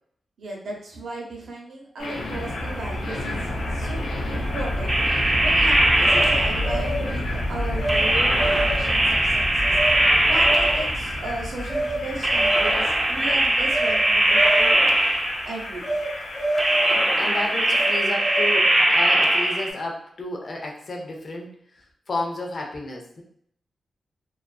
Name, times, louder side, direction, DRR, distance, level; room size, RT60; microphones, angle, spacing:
voice 1, 0.4-3.4 3.7-4.9 5.4-14.8 15.4-15.8, right 2 dB, 75° right, -1 dB, 0.7 m, -35 dB
sound 1, 2.0-18.0, left 1 dB, 90° left, 0.5 m, -30 dB
sound 2, 4.9-7.0 7.9-11.3 12.2-15.6 16.6-19.7, right 1 dB, 15° right, 0.3 m, -21 dB
sound 3, 6.0-7.1 7.8-8.0 8.3-8.9 9.7-10.0 10.3-10.9 11.7-12.0 12.3-12.9 13.7-14.0 14.3-14.9 15.8-16.1 16.3-17.2 17.7-18.7, right 1 dB, 15° left, 0.8 m, -28 dB
voice 2, 17.2-23.2, left 2 dB, 40° left, 0 dB, 0.5 m, -32 dB
2.4 x 2.4 x 2.2 m, 0.66 s
wide cardioid pair, 170°, 0 cm